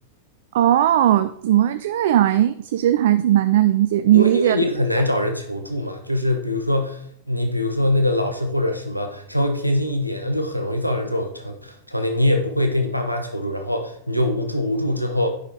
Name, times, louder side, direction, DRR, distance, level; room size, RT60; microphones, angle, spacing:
voice 1, 0.5-4.6, right 12 dB, 55° right, 12 dB, 0.3 m, -18 dB
voice 2, 4.1-7.0 7.3-15.3, left 1 dB, 90° left, 4 dB, 0.8 m, -23 dB
9.4 x 5.9 x 3.4 m, 0.67 s
figure-of-eight pair, 90°, 0 cm